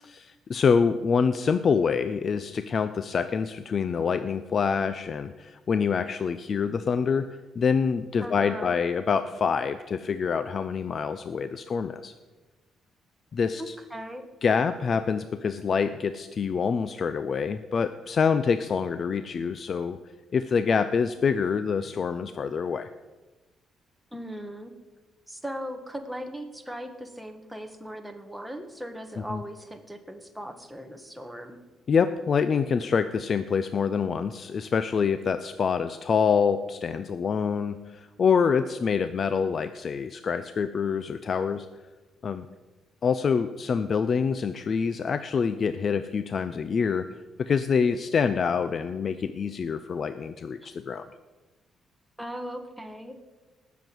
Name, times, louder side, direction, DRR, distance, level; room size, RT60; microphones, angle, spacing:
voice 1, 0.1-7.3 7.6-12.1 13.3-13.7 14.4-20.0 20.3-22.9 29.3-29.4 31.9-41.7 42.2-42.5 43.0-47.0 47.4-51.1, left 6 dB, 50° left, 11 dB, 0.5 m, -26 dB
voice 2, 8.2-8.8 13.5-14.2 24.1-24.7 25.3-31.6 50.6-50.7 52.2-53.2, equal, 5° right, 4 dB, 1.5 m, -38 dB
19.0 x 7.1 x 4.7 m, 1.2 s
cardioid pair, 90°, 0 cm